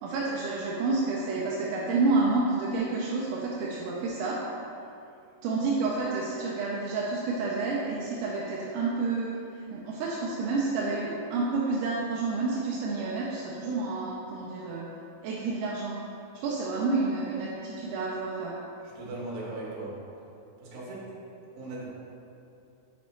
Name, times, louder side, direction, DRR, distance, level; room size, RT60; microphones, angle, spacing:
voice 1, 0.0-4.4 5.4-14.9 15.2-16.0 16.3-18.5, right 3 dB, 80° right, -5 dB, 2.4 m, -29 dB
voice 2, 18.8-20.0 20.6-21.1 21.5-21.9, right 2 dB, 60° right, -6 dB, 2.7 m, -38 dB
7.9 x 5.1 x 3.1 m, 2.7 s
omnidirectional pair, 5.2 m